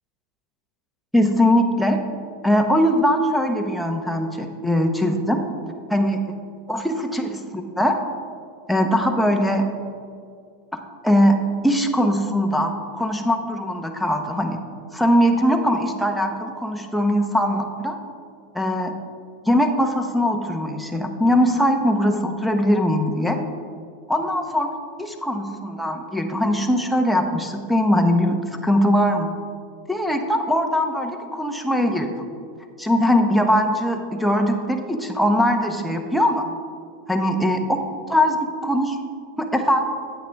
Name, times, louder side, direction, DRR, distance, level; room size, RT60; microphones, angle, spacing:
voice 1, 1.1-2.0 2.4-5.4 5.9-6.2 6.7-8.0 8.7-9.7 10.7-11.4 11.6-14.6 14.9-18.0 18.5-18.9 19.4-23.4 24.1-29.3 29.9-32.2 32.8-36.5 37.1-37.6 38.1-39.0 39.4-39.9, equal, ahead, 4 dB, 1.0 m, -21 dB
9.0 x 8.3 x 3.5 m, 2.2 s
hypercardioid pair, 105°, 0 cm